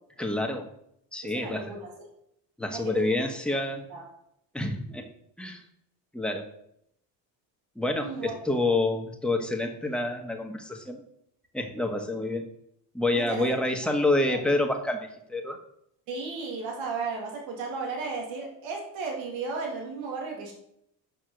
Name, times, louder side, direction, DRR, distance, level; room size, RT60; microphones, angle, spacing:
voice 1, 0.2-0.7 1.1-1.7 2.6-3.8 4.5-5.1 5.4-5.6 6.1-6.5 7.7-11.0 11.5-12.4 12.9-15.6, left 2 dB, ahead, 3 dB, 1.4 m, -28 dB
voice 2, 1.2-1.9 2.7-3.1 3.5-4.1 8.0-8.3 13.1-13.6 14.3-14.4 16.1-20.5, right 4 dB, 80° right, 1 dB, 2.2 m, -35 dB
6.8 x 5.5 x 6.5 m, 0.73 s
supercardioid pair, 85°, 46 cm